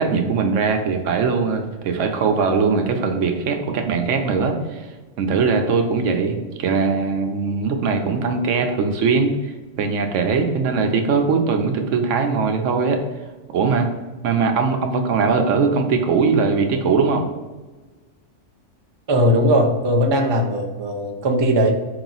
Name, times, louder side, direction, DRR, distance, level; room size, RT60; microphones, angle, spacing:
voice 1, 0.0-4.9 5.2-13.0 13.5-13.9 14.2-17.3, right 5 dB, 85° right, 5 dB, 1.0 m, -20 dB
voice 2, 19.1-21.7, equal, 35° right, 2 dB, 0.4 m, -18 dB
4.6 x 3.0 x 3.9 m, 1.2 s
omnidirectional pair, 1.2 m